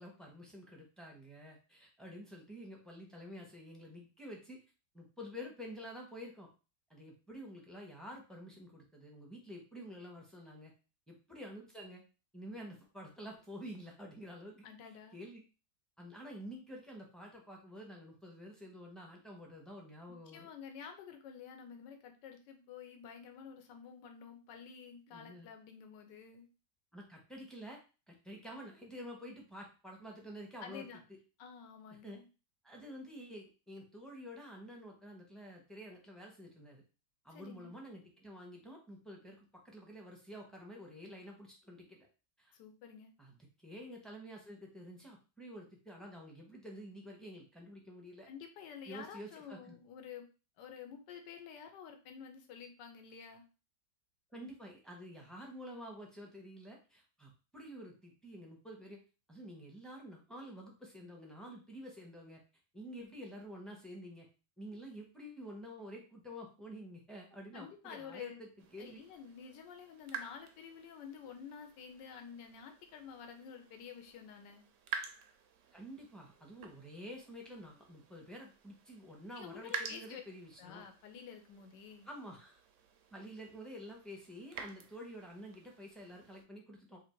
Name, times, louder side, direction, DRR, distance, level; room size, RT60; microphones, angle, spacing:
voice 1, 0.0-4.6 4.9-6.5 6.9-10.7 11.1-12.0 12.3-15.4 16.0-20.5 25.1-25.5 26.9-27.8 28.1-31.2 32.0-32.2 32.6-36.8 37.2-42.1 42.4-42.5 43.2-48.3 48.9-49.7 54.3-59.0 59.3-62.4 62.7-64.3 64.6-69.0 75.7-80.8 82.0-82.6 83.1-87.0, equal, ahead, -1 dB, 0.4 m, -49 dB
voice 2, 14.6-15.2 20.1-26.5 30.6-31.0 31.4-32.3 37.3-37.7 42.5-43.1 48.3-50.3 50.6-53.5 67.5-68.4 68.8-74.6 79.4-80.2 80.6-82.1, left 7 dB, 85° left, 5 dB, 1.4 m, -50 dB
sound 1, 68.6-86.4, right 6 dB, 70° right, 0.7 m, -50 dB
3.4 x 2.7 x 4.3 m, 0.32 s
omnidirectional pair, 1.8 m